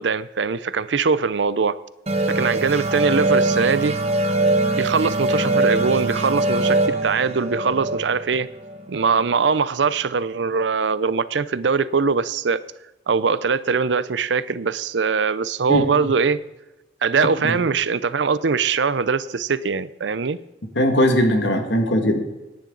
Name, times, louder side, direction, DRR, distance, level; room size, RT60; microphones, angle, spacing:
voice 1, 0.0-1.8 2.3-4.0 4.7-8.5 8.9-12.6 13.1-16.4 17.0-20.4, right 5 dB, 80° right, 16 dB, 0.6 m, -22 dB
sound 1, 2.1-9.3, right 2 dB, 35° right, 1.2 m, -22 dB
voice 2, 15.7-16.1 17.4-17.6 20.8-22.2, equal, 75° left, 5 dB, 2.0 m, -19 dB
16.0 x 10.5 x 3.9 m, 1.0 s
head